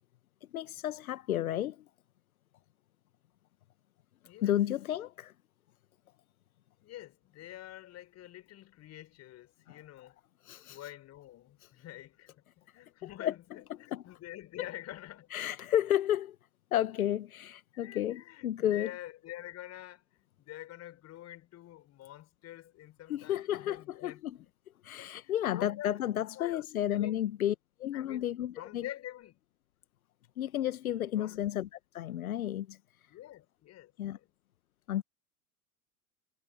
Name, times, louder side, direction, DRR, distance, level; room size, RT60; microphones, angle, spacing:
voice 1, 0.5-1.8 4.4-5.3 9.7-9.8 10.4-10.8 13.2-13.3 13.9-14.0 15.3-16.3 16.7-18.9 23.1-24.4 24.8-27.5 27.8-28.8 30.4-32.8 34.0-34.2 34.9-35.0, left 11 dB, 65° left, 1.3 m, -32 dB
voice 2, 4.3-4.6 6.8-10.2 10.7-12.4 12.7-15.3 17.7-24.5 25.0-26.0 26.4-27.3 27.9-29.4 31.2-31.4 33.1-34.3, left 14 dB, 35° left, 5.3 m, -47 dB
figure-of-eight pair, 90°, 47 cm